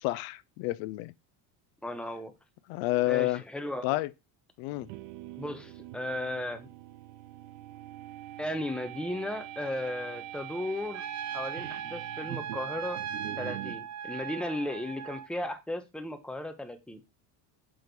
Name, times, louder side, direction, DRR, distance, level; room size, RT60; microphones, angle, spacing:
voice 1, 0.0-1.1 2.7-3.4 3.8-4.1 4.6-4.9, left 18 dB, 70° left, 0.5 m, -29 dB
voice 2, 1.8-2.3 3.1-3.9 5.4-6.7 8.4-11.0 11.3-13.0 13.4-17.0, left 1 dB, ahead, 0.7 m, -35 dB
sound 1, 4.7-13.8, right 14 dB, 85° right, 0.7 m, -44 dB
Trumpet, 10.9-15.3, right 8 dB, 35° right, 0.8 m, -38 dB
6.1 x 3.1 x 5.2 m
cardioid pair, 140°, 49 cm